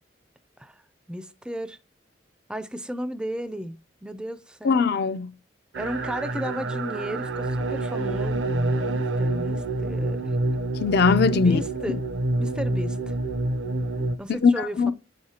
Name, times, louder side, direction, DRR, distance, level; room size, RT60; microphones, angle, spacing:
voice 1, 1.1-1.8 2.5-4.9 5.8-10.3 11.4-12.0 12.4-13.1 14.2-14.9, equal, 5° right, 0.4 m, -34 dB
voice 2, 4.6-5.3 10.8-11.6 14.3-14.9, left 5 dB, 55° left, 0.4 m, -20 dB
sound 1, 5.7-14.2, right 2 dB, 65° right, 0.6 m, -27 dB
8.5 x 6.4 x 2.8 m
head